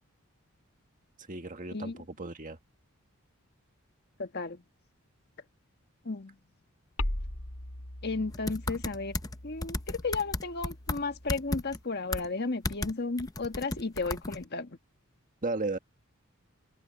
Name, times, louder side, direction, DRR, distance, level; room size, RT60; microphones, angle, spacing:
voice 1, 1.3-2.6 15.4-15.8, right 3 dB, 35° right, 1.7 m, -34 dB
voice 2, 4.2-4.6 6.0-6.3 8.0-9.1 9.4-14.7, left 3 dB, 45° left, 1.5 m, -33 dB
sound 1, 7.0-11.8, left 1 dB, 75° left, 3.7 m, -40 dB
sound 2, 8.3-9.3 9.6-11.0 11.3-11.8 12.1-12.3 12.6-12.9 13.2-14.5, left 2 dB, 15° left, 0.6 m, -33 dB
head